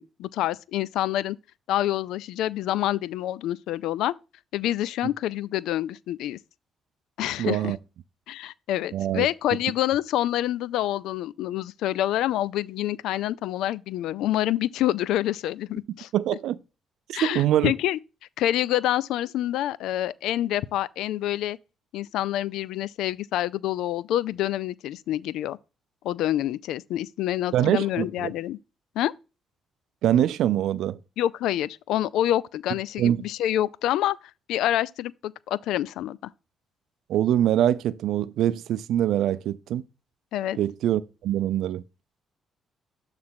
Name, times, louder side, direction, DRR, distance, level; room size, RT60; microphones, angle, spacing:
voice 1, 0.0-1.4 1.7-4.1 4.5-6.4 7.2-7.8 8.3-16.1 17.1-18.0 18.4-21.6 21.9-25.6 26.0-28.6 29.0-29.1 31.2-34.2 34.5-36.2 40.3-40.6, left 13 dB, 85° left, 0.3 m, -27 dB
voice 2, 7.4-7.8 8.9-9.3 16.1-16.6 17.1-17.7 27.5-28.3 30.0-31.0 33.0-33.2 37.1-39.8 40.5-41.8, right 11 dB, 80° right, 0.4 m, -24 dB
6.9 x 3.2 x 5.7 m
cardioid pair, 90°, 0 cm